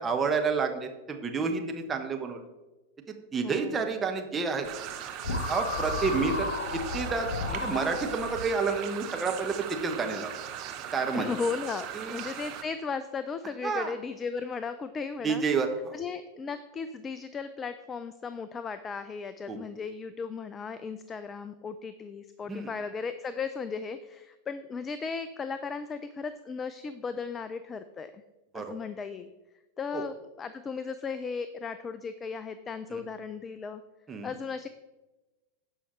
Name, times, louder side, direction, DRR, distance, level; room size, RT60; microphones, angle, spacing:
voice 1, 0.0-2.4 3.3-4.7 5.5-10.3 10.9-11.3 11.9-12.2 13.6-13.9 15.2-16.0 19.5-19.6 22.5-22.7 28.5-28.7 29.9-30.0 32.9-33.0 34.1-34.3, right 4 dB, 15° right, 3 dB, 1.1 m, -30 dB
voice 2, 3.4-3.8 11.1-15.4 15.9-28.2 28.5-29.3 29.8-33.8 34.2-34.7, left 5 dB, 20° left, 12 dB, 0.4 m, -36 dB
sound 1, 4.6-12.6, right 10 dB, 40° right, 0.9 m, -39 dB
sound 2, 5.2-8.4, left 3 dB, 65° left, 1.0 m, -33 dB
16.5 x 5.5 x 3.2 m, 1.1 s
figure-of-eight pair, 90°, 0 cm